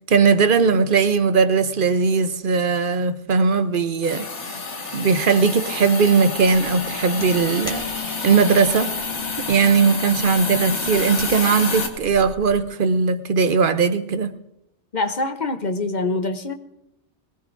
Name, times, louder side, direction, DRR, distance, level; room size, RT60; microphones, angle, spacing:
voice 1, 0.1-4.3 4.9-7.8 8.2-8.9 9.4-14.3, right 5 dB, 55° right, 0.9 m, -19 dB
Hiss, 4.0-11.9, left 4 dB, 80° left, 1.9 m, -28 dB
sound 1, 6.3-12.7, equal, 5° left, 2.1 m, -43 dB
voice 2, 14.9-16.5, left 3 dB, 45° left, 0.9 m, -24 dB
22.5 x 18.0 x 2.6 m
omnidirectional pair, 1.2 m